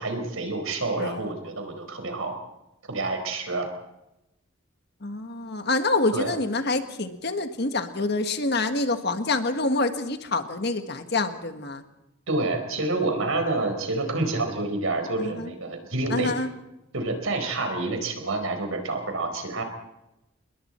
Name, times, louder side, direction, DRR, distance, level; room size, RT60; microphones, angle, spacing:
voice 1, 0.0-2.3 2.9-3.7 6.1-6.4 12.3-16.3 16.9-19.6, right 2 dB, 85° right, 5 dB, 4.7 m, -28 dB
voice 2, 5.0-11.8 15.2-15.5 16.1-16.5, left 2 dB, 50° left, 8 dB, 1.6 m, -26 dB
28.0 x 21.5 x 4.4 m, 0.92 s
head